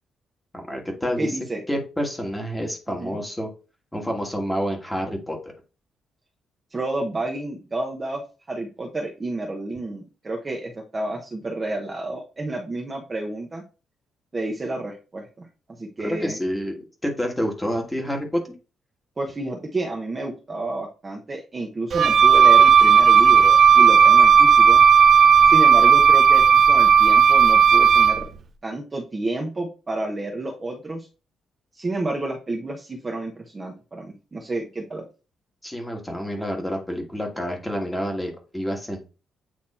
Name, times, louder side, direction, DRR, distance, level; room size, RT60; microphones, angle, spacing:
voice 1, 0.5-1.4 1.7-3.5 3.9-5.5 16.0-18.4 35.6-39.0, equal, 5° left, 2 dB, 1.5 m, -28 dB
voice 2, 1.2-1.6 2.9-3.2 6.7-8.2 8.5-13.6 14.3-15.5 15.8-16.4 19.2-24.8 25.5-28.2 28.6-31.1 31.8-35.0, right 2 dB, 20° right, 0 dB, 0.9 m, -30 dB
Wind instrument woodwind instrument, 21.9-28.2, right 7 dB, 45° right, 0.5 m, -13 dB
8.7 x 3.0 x 4.2 m, 0.33 s
cardioid pair, 165°, 0 cm